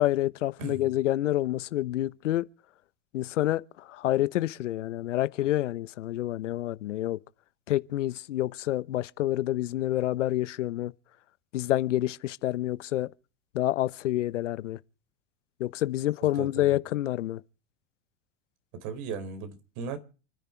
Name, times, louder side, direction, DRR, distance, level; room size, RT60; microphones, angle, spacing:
voice 1, 0.0-2.4 3.1-7.2 7.7-10.9 11.5-13.1 13.5-14.8 15.6-17.4, left 14 dB, 85° left, 1.0 m, -28 dB
voice 2, 16.3-16.8 18.7-20.0, right 5 dB, 55° right, 4.2 m, -37 dB
29.0 x 10.5 x 4.6 m
hypercardioid pair, 105°, 36 cm